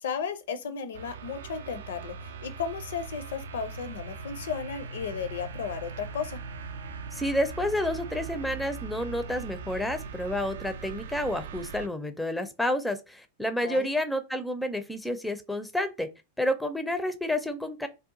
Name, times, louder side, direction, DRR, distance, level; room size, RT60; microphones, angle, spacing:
voice 1, 0.0-6.4 13.6-13.9, left 6 dB, 60° left, 0.5 m, -34 dB
sound 1, 0.9-11.9, right 5 dB, 65° right, 0.4 m, -40 dB
voice 2, 7.1-16.1 16.4-17.9, left 1 dB, 5° left, 0.5 m, -30 dB
2.7 x 2.3 x 3.7 m
figure-of-eight pair, 90°, 0 cm